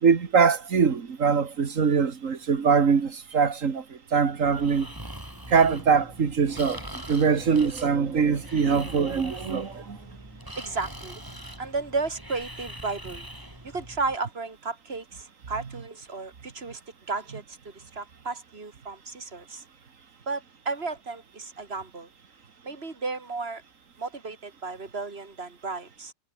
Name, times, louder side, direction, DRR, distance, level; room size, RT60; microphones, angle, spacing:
voice 1, 0.0-4.9 5.5-6.8 7.1-10.0, right 6 dB, 85° right, 2.1 m, -23 dB
Breathing, 4.4-14.1, right 1 dB, 15° right, 5.9 m, -42 dB
voice 2, 10.6-11.2 11.6-13.3 13.6-16.8 17.1-19.6 20.3-22.1 22.6-23.6 24.0-26.1, right 3 dB, 50° right, 3.3 m, -33 dB
omnidirectional pair, 1.3 m